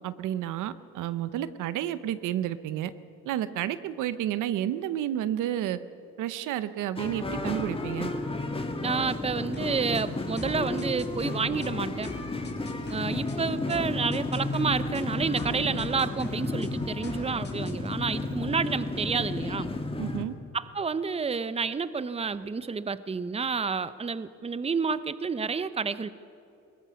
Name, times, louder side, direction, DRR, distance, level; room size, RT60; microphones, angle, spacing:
voice 1, 0.0-2.9 3.2-5.8 6.2-8.1 20.0-20.3, right 12 dB, 90° right, 14 dB, 0.8 m, -31 dB
sound 1, 7.0-20.2, left 2 dB, 20° left, 1.9 m, -32 dB
voice 2, 8.8-12.1 12.8-19.7 20.5-26.1, right 5 dB, 20° right, 15 dB, 0.7 m, -30 dB
sound 2, 9.5-17.9, left 4 dB, 35° left, 3.0 m, -46 dB
21.5 x 17.5 x 7.0 m, 2.6 s
cardioid pair, 90°, 30 cm